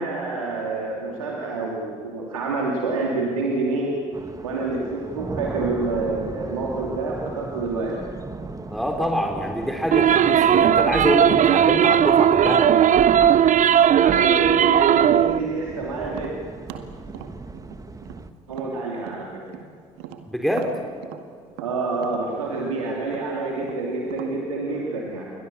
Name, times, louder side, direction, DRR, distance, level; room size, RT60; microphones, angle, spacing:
voice 1, 0.0-4.0 4.4-8.0 14.0-16.3 18.5-19.4 21.6-25.3, right 3 dB, 90° right, -2 dB, 2.7 m, -27 dB
sound 1, 4.1-18.3, right 3 dB, 20° right, 1.6 m, -37 dB
voice 2, 8.7-12.7 20.3-20.7, equal, ahead, 2 dB, 3.8 m, -25 dB
sound 2, 9.9-15.4, right 9 dB, 50° right, 0.9 m, -17 dB
Tap, 16.1-19.7 20.0-24.4, right 10 dB, 75° right, 1.9 m, -41 dB
29.5 x 23.0 x 7.1 m, 2.3 s
hypercardioid pair, 55°, 17 cm